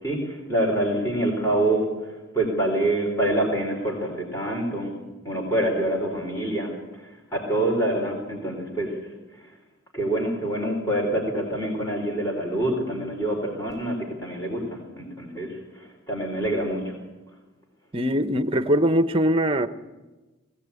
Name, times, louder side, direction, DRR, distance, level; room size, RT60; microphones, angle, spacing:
voice 1, 0.0-4.9 5.2-6.7 7.0-9.0 9.9-17.0, right 1 dB, 15° left, 0 dB, 3.8 m, -26 dB
voice 2, 17.9-19.7, equal, 25° right, 10 dB, 0.9 m, -21 dB
20.0 x 16.5 x 8.4 m, 1.2 s
head